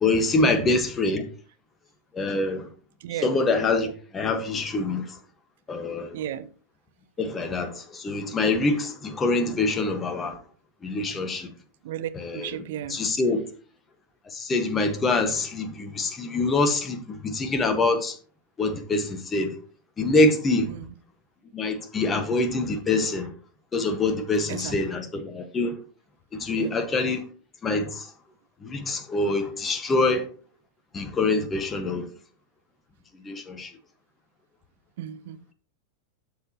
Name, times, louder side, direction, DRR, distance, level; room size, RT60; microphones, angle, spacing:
voice 1, 0.0-1.2 2.1-2.7 3.2-5.2 5.7-6.2 7.2-10.4 10.8-11.5 12.1-13.4 14.3-18.2 18.6-19.6 20.0-20.7 21.5-23.3 23.7-25.8 26.3-27.2 27.6-28.1 28.6-30.2 30.9-32.1 33.2-33.7, left 2 dB, 20° left, 1.5 m, -25 dB
voice 2, 3.0-3.3 6.1-6.5 11.8-13.0 20.7-20.9 24.5-24.8 26.6-26.7 35.0-35.4, right 11 dB, 55° right, 0.8 m, -34 dB
12.0 x 7.1 x 3.0 m
figure-of-eight pair, 90°, 0 cm